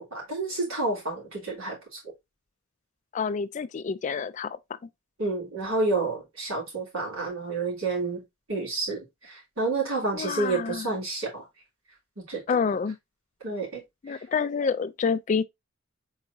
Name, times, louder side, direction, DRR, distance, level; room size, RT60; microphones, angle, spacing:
voice 1, 0.0-1.8 5.2-8.2 8.5-11.4 12.2-12.4 13.4-13.8 14.1-14.2, right 3 dB, 90° right, 3.0 m, -29 dB
voice 2, 3.1-4.6 10.1-10.9 12.5-13.0 14.0-15.4, left 5 dB, 35° left, 0.3 m, -28 dB
4.6 x 4.0 x 2.6 m
head